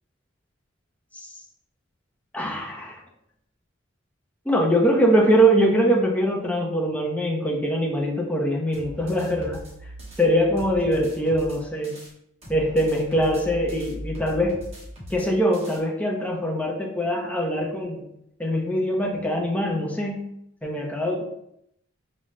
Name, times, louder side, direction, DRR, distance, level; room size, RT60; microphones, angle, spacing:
voice 1, 2.3-3.0 4.5-9.6 10.2-12.0 12.5-14.6 15.1-18.1 18.4-20.3 20.6-21.2, equal, 5° left, -1 dB, 0.7 m, -23 dB
sound 1, 8.7-12.1 12.4-15.8, equal, 35° right, 1.1 m, -40 dB
5.1 x 2.2 x 3.2 m, 0.75 s
head